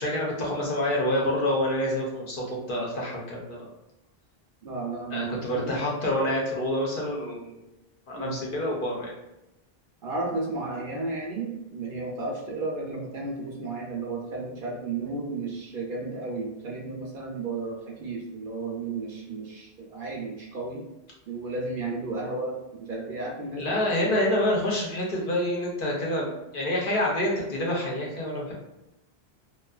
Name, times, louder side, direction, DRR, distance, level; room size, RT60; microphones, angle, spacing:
voice 1, 0.0-3.7 5.1-7.6 8.1-9.1 23.6-28.5, left 1 dB, 60° left, -3 dB, 0.8 m, -27 dB
voice 2, 4.6-5.9 8.1-8.4 10.0-20.9 21.3-23.8 24.1-24.2, right 3 dB, 65° right, -1 dB, 0.7 m, -33 dB
2.4 x 2.3 x 2.3 m, 0.94 s
omnidirectional pair, 1.0 m